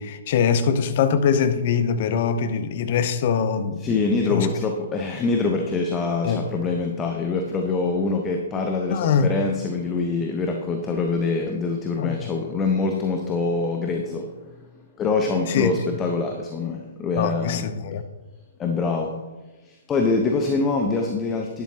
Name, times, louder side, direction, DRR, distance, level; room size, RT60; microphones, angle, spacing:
voice 1, 0.0-4.0 4.3-4.5 6.2-6.4 8.9-9.3 12.0-12.2 15.5-15.7 17.2-18.0, left 7 dB, 45° left, 0.8 m, -22 dB
voice 2, 3.8-14.3 15.0-17.7 18.6-19.1 19.6-21.6, left 3 dB, 20° left, 1.0 m, -24 dB
11.5 x 10.5 x 2.9 m
figure-of-eight pair, 120°, 0 cm